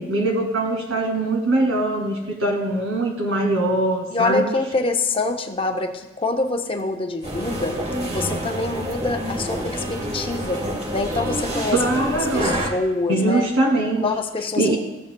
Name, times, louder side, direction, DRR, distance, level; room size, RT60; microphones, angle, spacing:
voice 1, 0.0-4.4 11.7-12.6 13.1-14.1 14.6-14.8, right 2 dB, 75° right, 0 dB, 2.2 m, -22 dB
voice 2, 4.1-7.8 8.1-10.7 10.9-12.1 12.3-13.5 14.0-14.7, left 3 dB, 25° left, 4 dB, 0.6 m, -25 dB
sound 1, 7.2-12.7, right 1 dB, 30° right, 1.3 m, -27 dB
14.0 x 8.2 x 2.2 m, 0.96 s
head